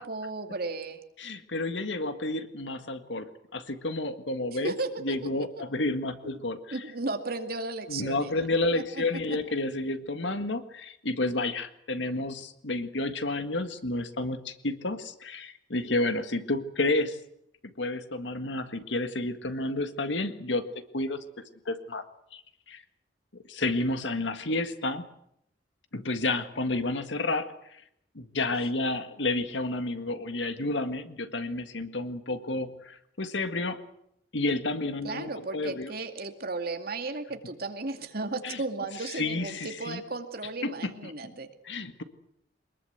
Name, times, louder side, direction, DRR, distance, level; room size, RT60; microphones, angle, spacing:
voice 1, 0.0-1.0 4.6-5.2 6.7-8.5 8.7-8.8 35.0-41.5, right 3 dB, 55° right, 6 dB, 2.3 m, -35 dB
voice 2, 1.2-4.7 5.0-6.7 7.9-17.2 17.6-20.6 20.9-21.2 21.7-22.0 22.3-22.4 22.7-22.8 23.5-25.1 25.9-27.8 28.2-33.8 34.3-35.9 38.4-38.6 39.1-40.0 40.6-41.3 41.6-42.0, left 2 dB, 85° left, 9 dB, 1.8 m, -30 dB
23.5 x 21.0 x 8.0 m, 0.76 s
head